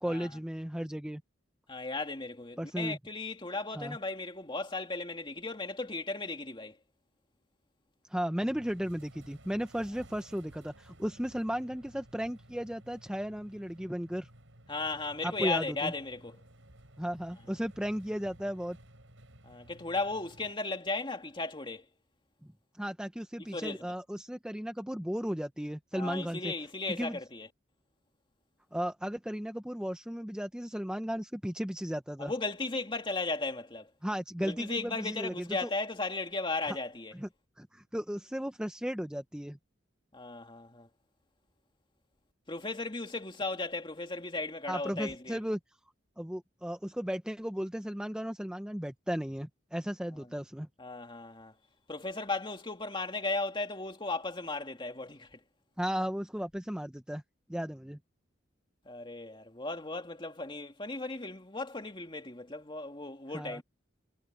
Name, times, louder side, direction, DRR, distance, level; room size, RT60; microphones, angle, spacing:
voice 1, 0.0-1.2 2.6-3.0 3.8-4.0 8.1-14.3 15.2-15.9 17.0-18.8 22.8-26.5 27.0-27.2 28.7-32.3 34.0-35.7 36.7-36.8 37.2-37.3 37.6-39.6 44.7-45.6 46.2-50.7 55.8-57.2 57.5-58.0 63.3-63.6, equal, 5° right, 0.7 m, -35 dB
voice 2, 1.7-6.8 14.7-16.4 19.4-21.9 23.4-23.9 25.9-27.5 32.2-33.9 34.4-37.1 40.1-40.9 42.5-45.4 50.2-50.3 50.8-51.5 51.9-55.4 58.9-63.6, left 3 dB, 25° left, 2.4 m, -36 dB
sound 1, 8.4-20.5, right 1 dB, 85° right, 5.6 m, -56 dB
head